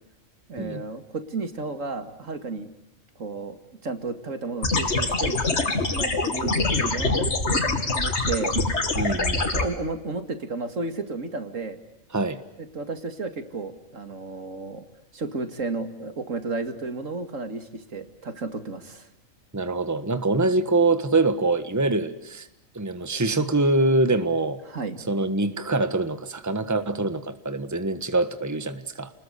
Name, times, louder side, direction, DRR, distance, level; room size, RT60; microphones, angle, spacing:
voice 1, 0.5-2.7 3.2-3.6 3.8-5.6 5.9-7.6 7.9-8.6 9.5-11.8 12.6-14.8 15.1-19.1 24.7-25.0, right 3 dB, 75° right, 8 dB, 2.6 m, -33 dB
sound 1, 4.6-9.6, left 3 dB, 55° left, 2.7 m, -24 dB
voice 2, 8.9-9.4 12.1-12.4 19.5-22.5 22.7-24.6 25.1-29.1, right 2 dB, 15° right, 10 dB, 1.4 m, -24 dB
29.5 x 20.5 x 8.3 m, 0.90 s
omnidirectional pair, 1.4 m